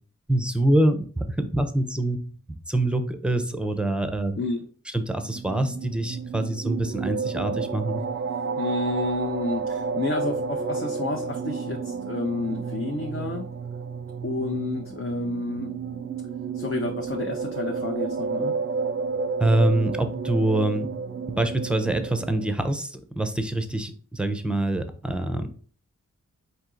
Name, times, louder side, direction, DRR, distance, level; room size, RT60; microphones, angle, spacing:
voice 1, 0.3-2.2 2.7-4.3 4.9-8.0 19.4-20.9 21.4-25.5, right 1 dB, 5° right, 8 dB, 0.6 m, -25 dB
sound 1, 5.2-22.5, right 5 dB, 45° right, 0.4 m, -31 dB
voice 2, 8.5-13.5 14.2-15.7 16.5-18.5, left 2 dB, 45° left, 2 dB, 0.7 m, -30 dB
4.4 x 2.8 x 3.8 m, 0.43 s
wide cardioid pair, 60°, 30 cm